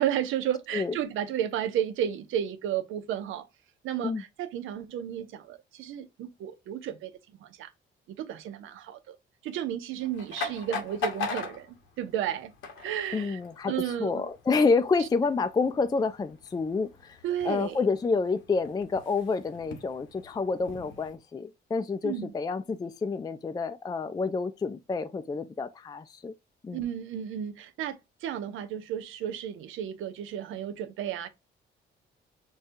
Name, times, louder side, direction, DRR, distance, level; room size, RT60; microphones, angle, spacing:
voice 1, 0.0-3.4 3.8-7.1 7.4-7.7 8.1-9.2 9.4-11.7 12.0-12.5 12.8-13.4 13.6-14.3 15.0-15.1 17.2-17.8 22.0-22.3 26.7-31.3, right 10 dB, 85° right, 0.7 m, -32 dB
sound 1, 10.0-21.1, left 4 dB, 90° left, 1.1 m, -41 dB
voice 2, 13.1-17.2 17.4-26.3 26.6-26.8, left 4 dB, 20° left, 0.4 m, -28 dB
6.3 x 2.3 x 2.6 m
cardioid pair, 90°, 20 cm